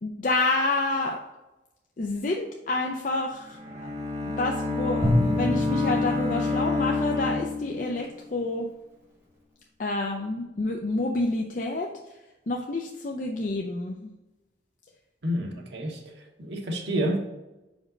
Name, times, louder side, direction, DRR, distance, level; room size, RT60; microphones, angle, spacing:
voice 1, 0.0-1.2 2.0-3.6 4.2-8.7 9.8-11.9 12.5-14.1, left 2 dB, 45° left, 1 dB, 0.5 m, -28 dB
Bowed string instrument, 3.4-8.2, left 3 dB, 35° right, 1.1 m, -28 dB
Drum, 5.0-7.4, left 1 dB, 10° right, 1.7 m, -28 dB
voice 2, 15.2-16.0 16.4-17.2, equal, 80° right, 1 dB, 1.1 m, -28 dB
5.2 x 5.0 x 3.8 m, 1.0 s
head